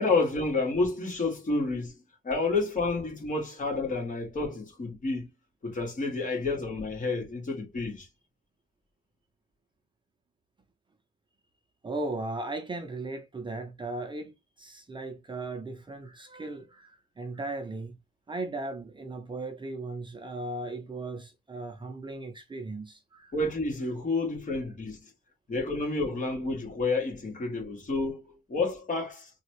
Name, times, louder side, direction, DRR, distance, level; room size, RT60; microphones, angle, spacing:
voice 1, 0.0-5.3 5.6-8.1 23.3-25.1 25.5-29.3, left 3 dB, 40° left, 2.0 m, -30 dB
voice 2, 11.8-18.0 18.3-23.3, right 2 dB, 25° right, 0.7 m, -37 dB
3.7 x 2.4 x 3.1 m
cardioid pair, 90°, 20 cm